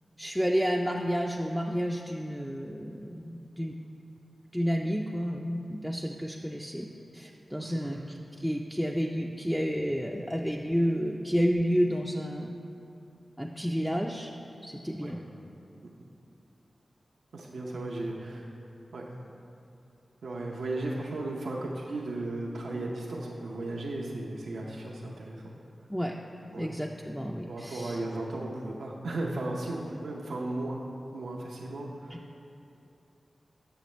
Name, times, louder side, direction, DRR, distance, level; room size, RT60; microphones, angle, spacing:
voice 1, 0.2-3.7 4.5-12.5 13.4-14.3 14.6-15.2 25.9-26.1 26.6-28.0, equal, ahead, 0 dB, 0.4 m, -30 dB
voice 2, 7.6-8.0 15.0-15.1 17.3-18.5 18.9-19.0 20.2-25.5 26.5-26.7 27.5-30.8 31.1-32.2, right 2 dB, 85° right, -2 dB, 0.6 m, -35 dB
7.9 x 6.4 x 3.1 m, 2.7 s
cardioid pair, 50°, 0 cm